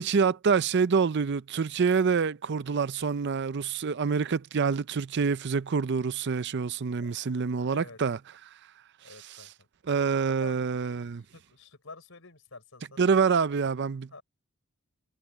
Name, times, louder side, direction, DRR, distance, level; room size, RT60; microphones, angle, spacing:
voice 1, 0.0-8.2 9.9-11.2 13.0-14.2, right 5 dB, 55° right, 0.5 m, -26 dB
voice 2, 7.5-8.0 9.0-9.7 10.3-13.1 14.1-14.2, left 3 dB, 65° left, 5.6 m, -49 dB
head